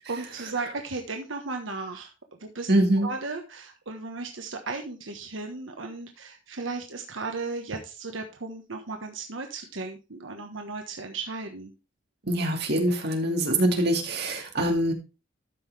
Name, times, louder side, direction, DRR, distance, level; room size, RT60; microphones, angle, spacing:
voice 1, 0.1-2.7 3.0-11.7, right 3 dB, 90° right, 4 dB, 1.3 m, -35 dB
voice 2, 2.7-3.1 12.3-14.9, right 1 dB, 55° right, 3 dB, 2.3 m, -24 dB
13.0 x 5.9 x 3.4 m, 0.29 s
head